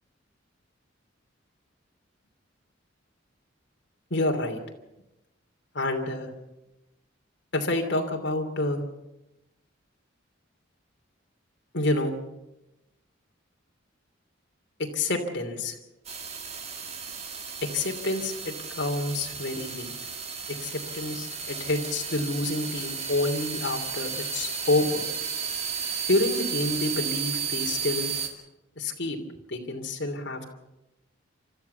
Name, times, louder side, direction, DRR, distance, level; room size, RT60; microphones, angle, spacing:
voice 1, 4.1-4.6 5.7-6.3 7.5-8.8 11.7-12.1 14.9-15.7 17.7-19.9 20.6-25.0 26.1-28.1 28.8-29.2 29.5-30.5, left 2 dB, 60° left, 3 dB, 2.9 m, -28 dB
sound 1, 16.0-28.3, right 6 dB, 35° right, 2.2 m, -33 dB
29.0 x 13.5 x 6.8 m, 0.95 s
head